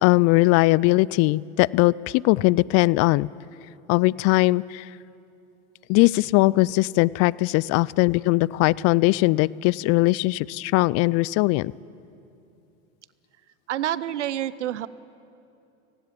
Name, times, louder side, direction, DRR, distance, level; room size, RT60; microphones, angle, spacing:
voice 1, 0.0-3.3 3.9-4.9 5.9-11.7, left 21 dB, 45° left, 23 dB, 0.4 m, -20 dB
voice 2, 13.7-14.9, right 12 dB, 90° right, 18 dB, 0.7 m, -28 dB
17.0 x 17.0 x 9.3 m, 2.7 s
hypercardioid pair, 90°, 34 cm